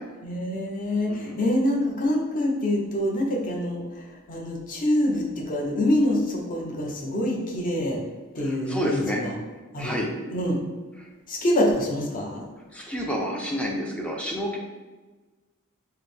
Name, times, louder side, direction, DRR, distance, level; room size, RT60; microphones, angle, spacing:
voice 1, 0.2-8.0 8.3-9.4 9.7-10.0 10.3-10.6 11.3-12.4, left 1 dB, 40° left, -1 dB, 0.7 m, -25 dB
voice 2, 1.1-1.4 8.4-9.2 9.8-10.1 12.7-14.6, equal, 5° left, -1 dB, 0.4 m, -29 dB
4.3 x 2.1 x 3.4 m, 1.2 s
head